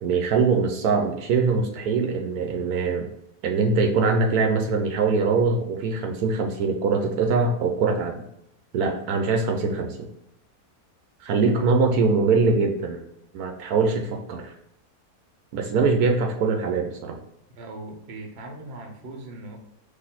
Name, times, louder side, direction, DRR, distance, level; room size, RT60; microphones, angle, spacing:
voice 1, 0.0-3.1 3.4-8.2 8.7-10.0 11.2-13.0 13.3-14.5 15.5-17.2, right 4 dB, 80° right, 3 dB, 1.2 m, -23 dB
voice 2, 17.5-19.6, right 2 dB, 50° right, 2 dB, 1.0 m, -39 dB
4.1 x 3.0 x 4.1 m, 0.80 s
omnidirectional pair, 1.6 m